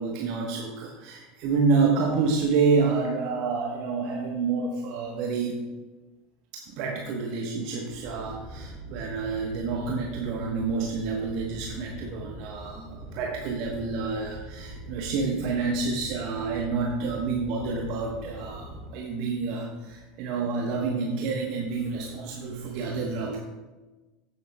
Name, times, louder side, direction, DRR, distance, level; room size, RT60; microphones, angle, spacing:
voice 1, 0.0-5.6 6.5-23.4, right 4 dB, 50° right, 0 dB, 1.1 m, -28 dB
sound 1, 7.9-18.9, right 1 dB, 10° left, 2.3 m, -43 dB
15.0 x 7.0 x 2.2 m, 1.2 s
figure-of-eight pair, 75°, 0 cm